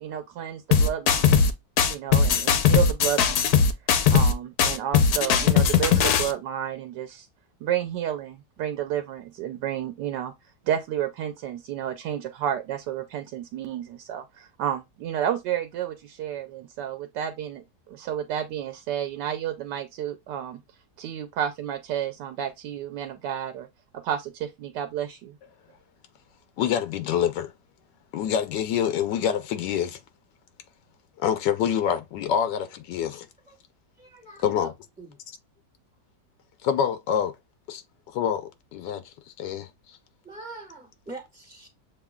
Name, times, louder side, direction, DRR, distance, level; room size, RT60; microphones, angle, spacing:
voice 1, 0.0-1.4 1.9-3.6 4.1-7.3 7.6-10.3 10.6-20.6 21.0-23.7 23.9-25.4, right 10 dB, 80° right, 1.2 m, -31 dB
sound 1, 0.7-1.5 1.8-4.3 4.6-6.3, left 6 dB, 65° left, 1.1 m, -19 dB
voice 2, 26.6-27.5 28.1-30.0 31.2-33.3 34.4-34.7 36.6-37.3 37.7-37.8 38.1-39.0 39.4-39.7, left 9 dB, 85° left, 1.3 m, -26 dB
voice 3, 34.0-34.7 35.0-35.2 40.2-41.7, right 3 dB, 5° right, 1.5 m, -43 dB
7.0 x 3.0 x 2.2 m
omnidirectional pair, 1.9 m